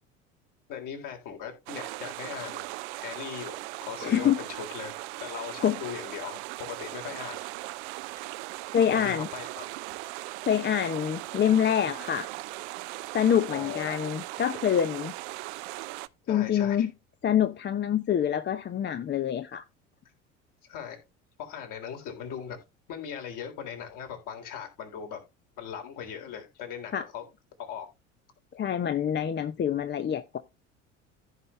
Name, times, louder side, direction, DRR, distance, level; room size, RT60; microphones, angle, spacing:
voice 1, 0.7-7.5 8.9-9.6 13.5-14.1 16.3-16.9 20.7-21.0 21.4-22.6 22.9-25.2 25.6-27.2 27.6-27.9, left 8 dB, 55° left, 3.6 m, -39 dB
sound 1, 1.7-16.1, right 20 dB, 65° right, 0.6 m, -39 dB
voice 2, 4.0-4.4 5.6-5.8 8.7-9.3 10.5-12.3 13.1-15.1 16.3-16.9 17.2-19.6 26.9-27.0 28.5-30.4, left 9 dB, 30° left, 0.8 m, -26 dB
15.0 x 5.4 x 3.2 m
hypercardioid pair, 70°, 37 cm